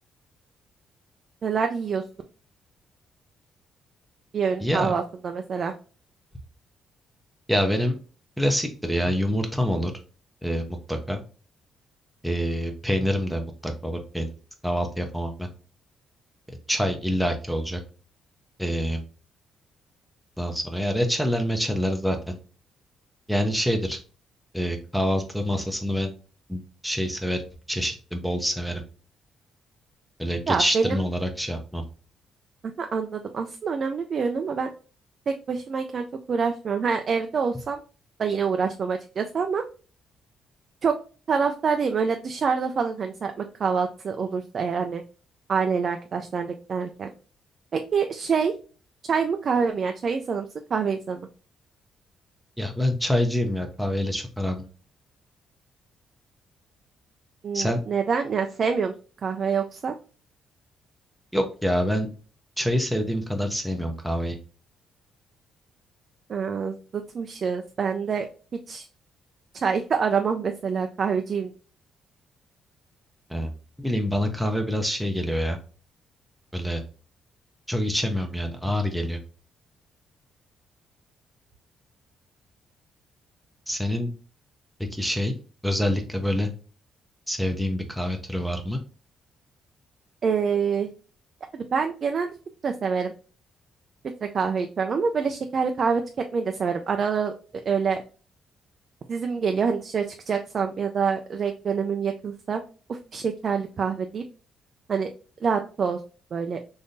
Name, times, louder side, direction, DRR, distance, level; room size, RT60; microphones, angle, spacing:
voice 1, 1.4-2.0 4.3-5.7 30.5-31.0 32.8-34.7 35.3-37.8 38.2-39.6 40.8-40.9 41.3-45.0 45.5-47.1 47.7-48.5 49.1-51.2 57.4-58.9 59.2-59.9 66.3-68.3 68.7-68.9 69.6-71.5 90.2-90.9 91.5-92.3 92.6-93.1 94.3-96.0 96.3-97.3 97.7-98.0 99.1-102.6 102.9-104.2 104.9-105.1 105.4-106.0 106.3-106.6, right 5 dB, 50° right, 5 dB, 0.4 m, -26 dB
voice 2, 4.6-4.9 7.5-8.0 8.4-9.9 10.4-11.2 12.2-14.3 14.6-15.5 16.5-17.8 18.6-19.0 20.4-22.4 23.3-24.0 24.5-26.1 26.5-28.8 30.2-31.8 52.6-54.7 57.5-57.8 61.3-62.1 62.6-64.4 73.3-73.5 73.8-75.6 76.5-76.8 77.7-79.2 83.7-84.1 84.8-85.3 85.6-86.5 87.3-88.8, equal, ahead, 3 dB, 0.6 m, -26 dB
3.6 x 2.6 x 2.6 m, 0.37 s
cardioid pair, 90°, 0 cm